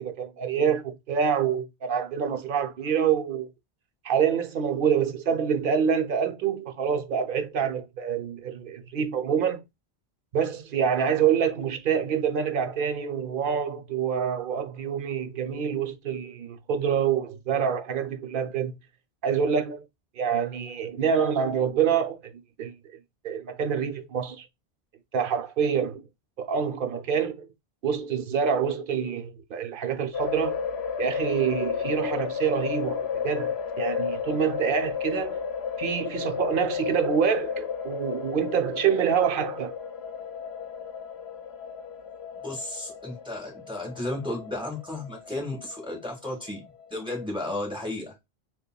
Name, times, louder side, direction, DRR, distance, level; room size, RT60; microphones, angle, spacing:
voice 1, 0.0-3.5 4.0-9.6 10.3-18.7 19.2-19.8 20.2-22.8 23.2-24.5 25.1-26.0 26.4-27.5 27.8-30.6 31.0-35.4 35.8-39.7, right 7 dB, 60° right, 0.8 m, -26 dB
sound 1, 30.1-47.1, left 7 dB, 85° left, 0.8 m, -33 dB
voice 2, 42.4-46.6 46.9-48.1, left 1 dB, 5° right, 1.4 m, -33 dB
6.6 x 2.3 x 2.2 m
omnidirectional pair, 1.0 m